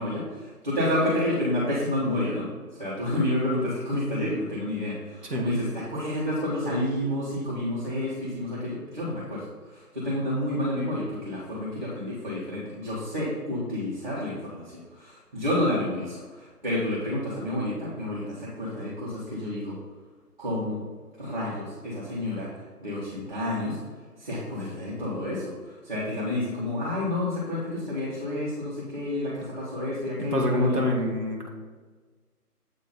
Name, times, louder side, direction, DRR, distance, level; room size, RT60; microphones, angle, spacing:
voice 1, 0.0-19.8 20.4-20.9 21.2-23.8 24.2-30.8, left 1 dB, 35° right, -9 dB, 1.4 m, -30 dB
voice 2, 30.2-31.5, left 1 dB, 85° right, -1 dB, 1.7 m, -26 dB
7.6 x 3.0 x 4.2 m, 1.4 s
figure-of-eight pair, 160°, 46 cm